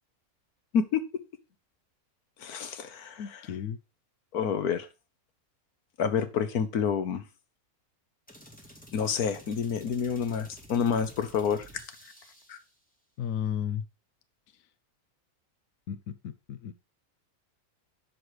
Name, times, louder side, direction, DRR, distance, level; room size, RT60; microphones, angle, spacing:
voice 1, 2.4-3.4 4.3-4.9 6.0-7.2 8.9-11.6 12.5-12.6, left 7 dB, 85° left, 11 dB, 1.5 m, -28 dB
voice 2, 3.2-3.8 13.2-13.8 15.9-16.7, left 9 dB, 70° left, 11 dB, 1.1 m, -34 dB
sound 1, 8.3-12.7, equal, 5° left, 2.1 m, -52 dB
7.8 x 6.2 x 4.7 m, 0.28 s
omnidirectional pair, 1.5 m